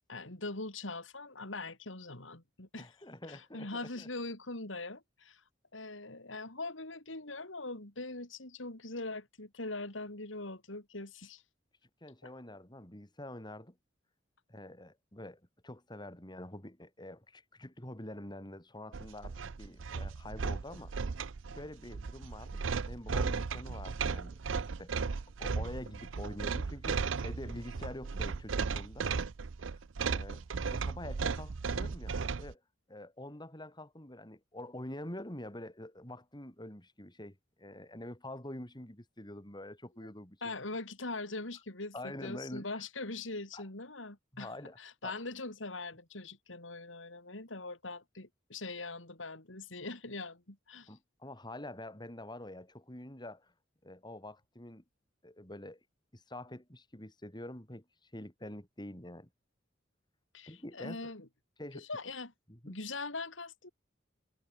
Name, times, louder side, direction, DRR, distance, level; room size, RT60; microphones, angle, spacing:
voice 1, 0.1-2.9 3.3-5.4 5.7-11.4 12.2-12.3 40.4-44.5 44.8-50.9 60.3-61.3 61.7-62.3 62.7-63.7, left 3 dB, 85° left, 4.2 m, -42 dB
voice 2, 2.8-4.1 12.0-13.8 14.5-20.9 21.5-25.1 25.4-29.1 29.7-29.8 30.1-32.1 32.4-32.6 32.9-40.6 41.9-42.8 43.5-43.6 44.3-45.2 50.9-53.5 53.8-54.8 55.2-55.8 56.1-59.3 60.5-61.1 61.6-61.8 62.5-62.8, left 1 dB, 25° left, 4.9 m, -46 dB
sound 1, 18.9-32.5, right 5 dB, 90° right, 0.6 m, -36 dB
head